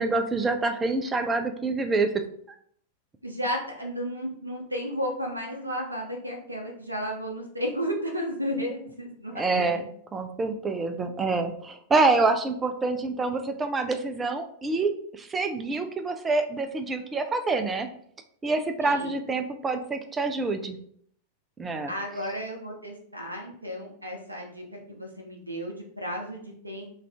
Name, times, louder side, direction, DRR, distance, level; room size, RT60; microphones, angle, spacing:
voice 1, 0.0-2.1 9.4-14.9 15.2-17.9 18.4-20.8 21.6-21.9, right 3 dB, 15° right, 7 dB, 0.4 m, -26 dB
voice 2, 3.2-9.6 18.8-19.2 21.9-26.8, equal, 85° right, 0 dB, 0.6 m, -33 dB
3.2 x 2.5 x 3.4 m, 0.64 s
figure-of-eight pair, 90°, 0 cm